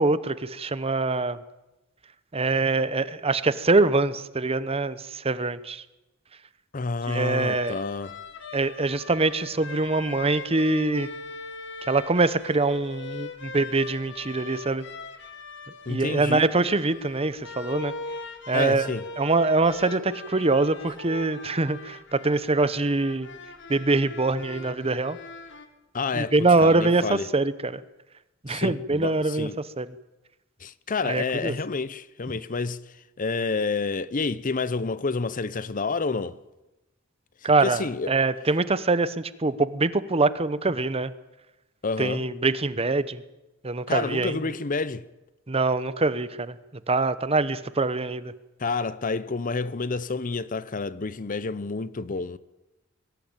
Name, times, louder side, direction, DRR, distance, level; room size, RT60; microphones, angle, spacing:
voice 1, 0.0-1.4 2.3-5.8 7.1-7.8 8.5-11.1 11.9-14.8 15.9-17.9 18.5-18.9 19.2-23.3 23.7-25.2 26.1-27.8 28.4-29.5 29.8-29.9 31.0-31.6 37.4-41.1 42.0-43.2 43.6-44.4 45.5-46.6 46.9-48.3, right 3 dB, 30° right, 0.9 m, -24 dB
voice 2, 6.7-8.2 15.9-16.5 18.5-19.0 25.9-27.3 28.5-29.6 30.6-32.8 33.2-36.4 37.6-38.1 41.8-42.2 43.9-45.1 48.6-52.4, left 4 dB, 40° left, 0.7 m, -29 dB
sound 1, 7.1-25.7, left 3 dB, 60° left, 1.9 m, -40 dB
22.5 x 17.5 x 8.9 m
head